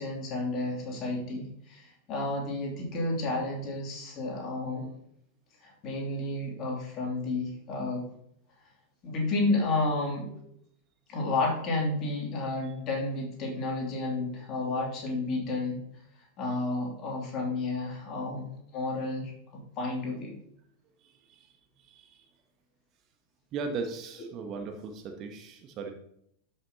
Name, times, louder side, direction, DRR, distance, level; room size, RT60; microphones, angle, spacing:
voice 1, 0.0-4.9 5.6-8.0 9.0-10.3 11.1-15.8 16.4-20.4, left 2 dB, 35° left, -1 dB, 3.0 m, -31 dB
voice 2, 21.8-22.2 23.5-25.9, right 4 dB, 35° right, 5 dB, 1.2 m, -37 dB
13.0 x 5.7 x 3.0 m, 0.71 s
figure-of-eight pair, 90°, 0 cm